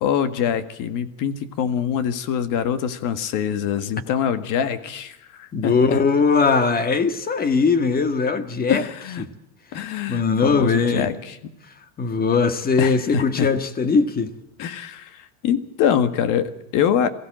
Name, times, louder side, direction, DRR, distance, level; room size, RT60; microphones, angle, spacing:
voice 1, 0.0-6.0 8.7-9.3 9.7-11.4 12.8-13.5 14.6-17.1, left 8 dB, 50° left, 1.8 m, -24 dB
voice 2, 5.5-8.8 9.2-9.3 10.1-11.1 12.0-14.3, left 5 dB, 20° left, 1.6 m, -20 dB
22.5 x 15.5 x 7.6 m
supercardioid pair, 135°, 41 cm